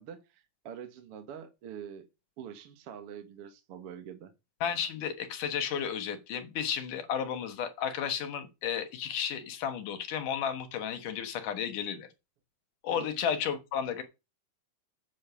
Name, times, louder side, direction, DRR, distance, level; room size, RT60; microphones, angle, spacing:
voice 1, 0.0-2.1 2.4-4.3 12.9-13.1, right 8 dB, 65° right, 1.4 m, -45 dB
voice 2, 4.6-12.1 12.8-14.0, left 8 dB, 65° left, 2.5 m, -33 dB
8.1 x 6.7 x 6.8 m
omnidirectional pair, 4.6 m